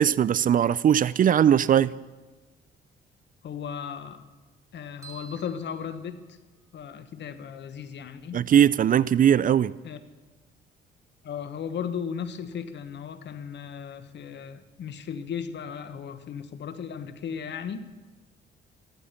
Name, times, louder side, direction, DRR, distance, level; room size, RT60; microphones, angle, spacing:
voice 1, 0.0-1.9 8.3-9.7, right 9 dB, 45° right, 0.4 m, -20 dB
voice 2, 3.4-4.2 4.7-6.4 6.7-8.4 9.8-10.0 11.2-17.8, left 7 dB, 65° left, 1.2 m, -36 dB
sound 1, 5.0-6.8, right 7 dB, 15° right, 2.3 m, -51 dB
14.0 x 13.5 x 5.7 m
cardioid pair, 90°, 20 cm